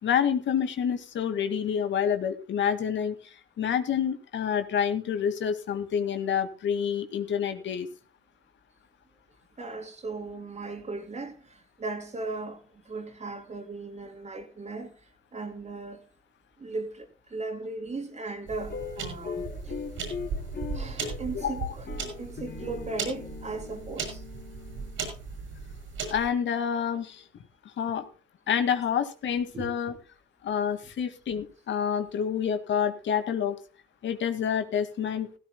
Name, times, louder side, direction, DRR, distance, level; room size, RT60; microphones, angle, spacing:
voice 1, 0.0-7.9 21.3-21.7 26.1-27.2 27.8-28.1 28.5-29.9 30.4-33.6 34.0-35.4, left 8 dB, 70° left, 2.0 m, -28 dB
voice 2, 9.6-16.0 16.6-19.8 20.7-21.9 22.2-24.2 29.5-29.7, right 3 dB, 35° right, 3.3 m, -37 dB
sound 1, 18.5-26.3, right 4 dB, 80° right, 7.3 m, -37 dB
sound 2, 18.7-25.2, left 6 dB, 55° left, 3.7 m, -40 dB
16.5 x 16.0 x 2.2 m
cardioid pair, 90°, 20 cm